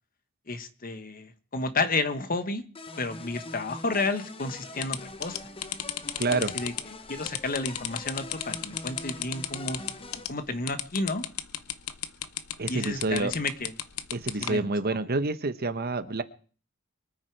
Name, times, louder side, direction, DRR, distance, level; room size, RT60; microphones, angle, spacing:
voice 1, 0.5-2.6 3.0-5.4 6.3-9.8 10.3-11.2 12.7-13.7 14.4-15.0, left 3 dB, 45° left, 10 dB, 1.3 m, -31 dB
sound 1, 2.7-10.2, left 2 dB, 25° left, 0.9 m, -43 dB
sound 2, 4.8-14.5, left 11 dB, 85° left, 0.9 m, -34 dB
voice 2, 6.2-6.5 12.6-13.3 14.1-16.2, right 3 dB, 50° right, 11 dB, 1.1 m, -28 dB
24.0 x 9.6 x 4.7 m, 0.41 s
head